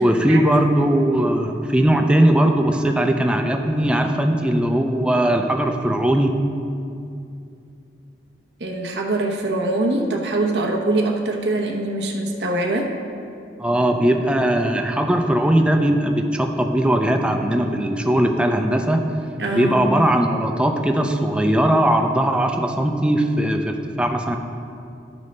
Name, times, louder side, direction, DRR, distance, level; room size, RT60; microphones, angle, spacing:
voice 1, 0.0-6.4 13.6-19.0 19.5-24.4, right 1 dB, 5° right, 4 dB, 0.5 m, -19 dB
voice 2, 8.6-12.9 19.4-19.8, right 2 dB, 75° right, 0 dB, 0.9 m, -23 dB
13.5 x 5.3 x 3.2 m, 2.5 s
head